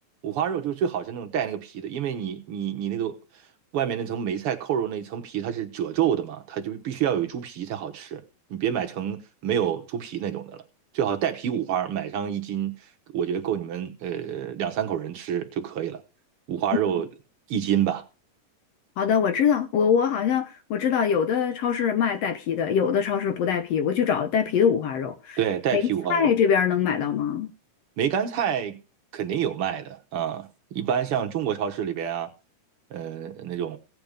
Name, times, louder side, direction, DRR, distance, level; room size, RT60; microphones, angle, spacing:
voice 1, 0.2-3.2 3.7-8.2 8.5-10.6 10.9-12.8 13.1-16.0 16.5-17.1 17.5-18.0 25.4-26.3 28.0-28.8 29.1-32.3 32.9-33.8, right 9 dB, 70° right, 1.3 m, -28 dB
voice 2, 19.0-25.4 25.7-25.8 26.1-27.5, left 7 dB, 75° left, 1.5 m, -23 dB
17.0 x 7.8 x 5.1 m
omnidirectional pair, 4.0 m